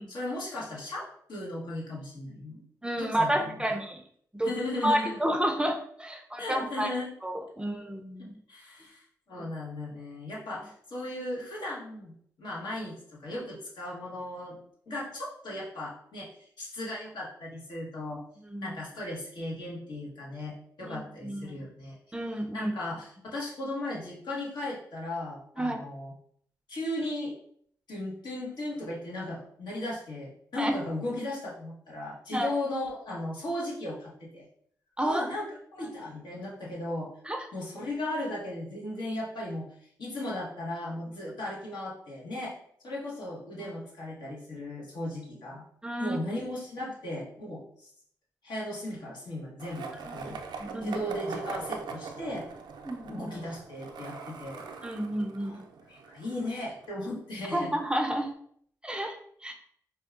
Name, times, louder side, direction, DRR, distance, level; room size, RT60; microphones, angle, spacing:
voice 1, 0.1-2.6 3.0-3.7 4.4-5.2 6.4-7.1 8.2-12.1 12.4-14.6 14.9-18.2 18.6-22.0 22.5-26.1 26.7-27.3 27.9-34.4 35.0-37.1 37.5-39.7 40.0-42.6 42.8-45.6 46.0-47.9 48.4-52.5 53.1-54.6 55.4-55.6 55.9-57.7, left 1 dB, 75° left, -4 dB, 1.1 m, -36 dB
voice 2, 2.8-4.0 4.3-4.5 4.8-6.9 7.2-8.3 9.4-9.5 18.5-18.8 20.8-21.6 22.1-22.7 25.6-25.8 30.6-30.7 32.3-32.6 35.0-35.2 37.3-37.5 45.8-46.2 50.1-50.2 50.6-51.0 52.9-53.3 54.8-55.6 57.5-58.3 58.8-59.1 59.4-59.5, right 1 dB, 10° right, 4 dB, 0.5 m, -30 dB
Skateboard, 49.6-57.5, right 5 dB, 80° right, 0.4 m, -42 dB
4.4 x 2.3 x 2.4 m, 0.63 s
cardioid pair, 50°, 7 cm